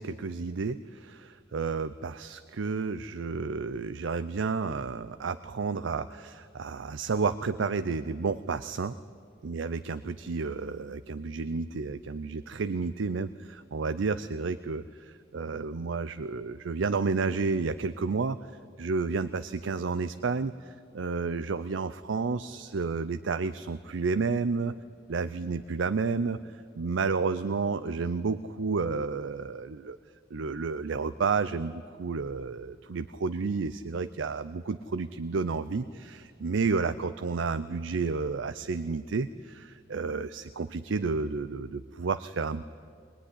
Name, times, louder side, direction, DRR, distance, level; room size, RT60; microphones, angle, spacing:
voice 1, 0.0-9.0 9.4-18.4 18.8-24.7 25.1-26.4 26.8-30.0 30.3-42.6, right 4 dB, 85° right, 13 dB, 0.5 m, -31 dB
21.0 x 20.5 x 9.9 m, 2.3 s
head